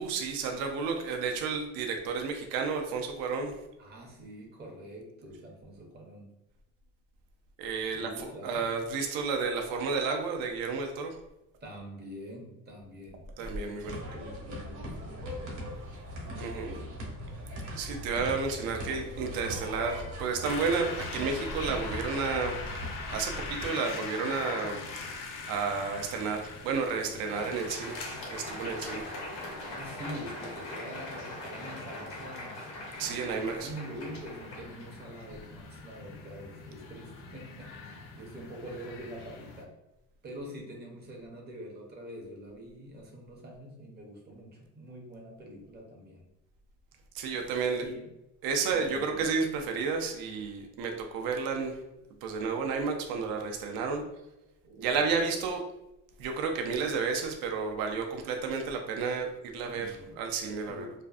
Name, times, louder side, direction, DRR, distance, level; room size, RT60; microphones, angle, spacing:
voice 1, 0.0-3.6 7.6-11.1 13.4-14.0 16.4-16.7 17.8-22.7 23.1-24.8 25.1-28.0 28.3-29.1 33.0-33.7 47.1-47.8 48.4-51.8 52.2-54.0 54.8-55.6 56.2-60.9, right 5 dB, 85° right, 3 dB, 0.5 m, -31 dB
voice 2, 3.8-6.3 7.9-8.7 11.6-15.4 16.2-17.0 29.6-32.7 33.0-39.7 40.2-46.3 47.8-48.1 48.7-49.3 54.6-55.0 59.6-60.2 60.7-60.9, equal, 30° right, -1 dB, 0.5 m, -45 dB
sound 1, 13.8-23.7, equal, 60° right, 0.9 m, -40 dB
sound 2, 20.4-39.6, left 4 dB, 65° left, 0.5 m, -43 dB
Crowd, 27.2-35.5, left 1 dB, 90° left, 0.9 m, -42 dB
2.5 x 2.4 x 2.3 m, 0.94 s
cardioid pair, 155°, 35 cm